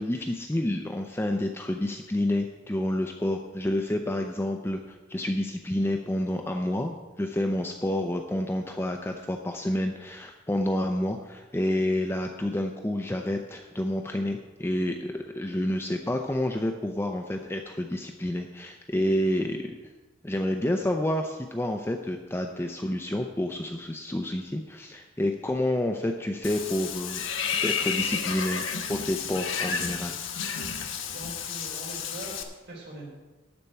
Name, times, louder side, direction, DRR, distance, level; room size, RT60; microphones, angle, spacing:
voice 1, 0.0-19.7 20.2-27.2 27.6-28.6 28.9-30.1, left 1 dB, 10° left, 4 dB, 0.5 m, -29 dB
Water / Bathtub (filling or washing), 26.4-32.4, left 6 dB, 85° left, 1.1 m, -31 dB
voice 2, 31.1-33.1, right 1 dB, 55° right, -3 dB, 3.9 m, -42 dB
12.0 x 4.4 x 8.2 m, 1.2 s
head